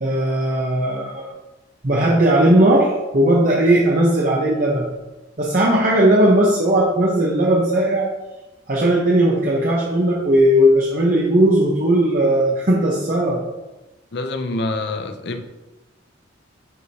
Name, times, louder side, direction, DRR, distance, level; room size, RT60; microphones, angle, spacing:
voice 1, 0.0-1.3 1.8-4.8 5.4-8.1 8.7-13.4, right 1 dB, 45° right, -4 dB, 1.0 m, -17 dB
voice 2, 14.1-15.5, left 2 dB, 60° left, 7 dB, 0.6 m, -26 dB
9.6 x 4.9 x 2.8 m, 1.1 s
head